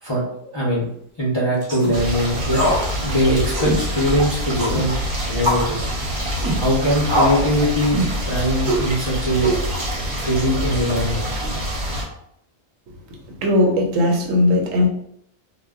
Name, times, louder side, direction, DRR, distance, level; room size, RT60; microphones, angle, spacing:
voice 1, 0.0-0.8 1.2-2.6 3.0-4.9 5.3-5.8 6.6-8.0 8.2-9.5 10.2-11.3, equal, 40° left, -7 dB, 0.4 m, -21 dB
sound 1, 1.6-1.9 2.5-2.8 3.1-3.2 3.5-3.8 4.6-4.8 5.4-5.7 6.4-6.6 7.1-7.5 7.9-8.2 8.7-8.9 9.4-9.9, right 1 dB, 25° right, 0.5 m, -21 dB
sound 2, 1.9-12.0, equal, 55° right, 0.8 m, -26 dB
voice 2, 13.4-14.9, left 2 dB, 80° right, 1 dB, 1.0 m, -18 dB
2.1 x 2.1 x 3.5 m, 0.71 s
omnidirectional pair, 1.4 m